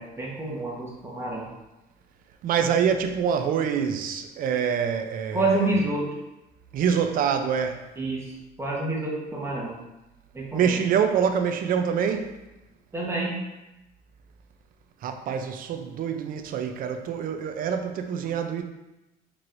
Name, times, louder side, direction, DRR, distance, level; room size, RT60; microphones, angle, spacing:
voice 1, 0.0-1.5 5.3-6.1 8.0-9.8 10.3-10.8 12.9-13.4, right 2 dB, 15° right, 1.0 m, -28 dB
voice 2, 2.4-5.5 6.7-7.8 10.5-12.3 15.0-18.6, right 7 dB, 55° right, 0.4 m, -25 dB
4.5 x 3.1 x 2.5 m
cardioid pair, 110°, 17 cm